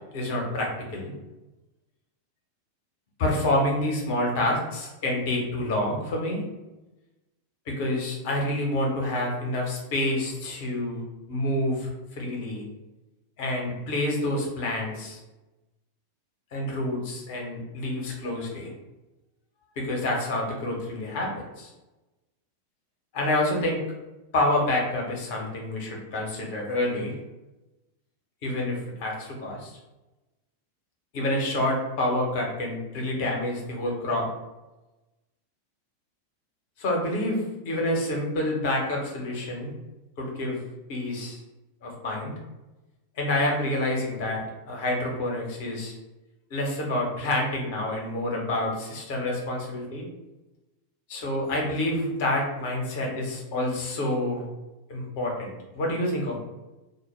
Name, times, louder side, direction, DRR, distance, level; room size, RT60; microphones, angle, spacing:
voice 1, 0.1-1.1 3.2-6.4 7.7-11.0 11.3-12.6 13.4-15.2 16.5-18.7 19.8-21.3 21.6-21.7 23.1-23.8 24.3-27.1 28.4-29.7 31.1-34.3 36.8-39.7 40.2-40.6 40.9-41.4 41.8-42.3 43.2-44.4 44.7-45.9 46.5-50.1 51.1-54.4 54.9-56.4, left 1 dB, 50° left, -1 dB, 0.8 m, -28 dB
2.2 x 2.1 x 3.1 m, 1.0 s
figure-of-eight pair, 90°, 0 cm